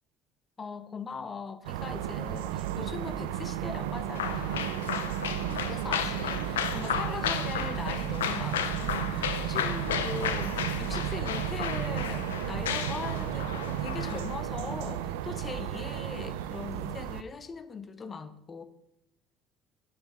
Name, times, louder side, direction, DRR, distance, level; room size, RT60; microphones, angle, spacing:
voice 1, 0.6-4.7 5.7-18.6, left 4 dB, 35° left, 1.1 m, -40 dB
sound 1, 1.6-17.2, right 11 dB, 75° right, 0.5 m, -33 dB
sound 2, 4.1-14.4, left 9 dB, 85° left, 0.6 m, -34 dB
10.0 x 7.9 x 5.0 m
hypercardioid pair, 60°, 0 cm